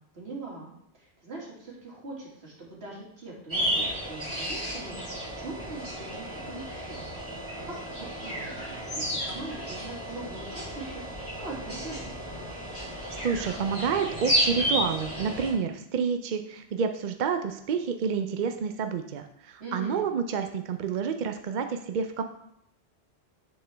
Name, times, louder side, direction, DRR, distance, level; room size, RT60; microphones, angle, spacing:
voice 1, 0.1-7.1 7.6-12.2 19.6-20.1, right 2 dB, 75° right, -4 dB, 2.3 m, -42 dB
sound 1, 3.5-15.5, equal, 10° right, 2.7 m, -32 dB
voice 2, 13.1-22.2, right 6 dB, 55° right, 7 dB, 0.6 m, -29 dB
9.6 x 4.4 x 3.3 m, 0.74 s
omnidirectional pair, 1.1 m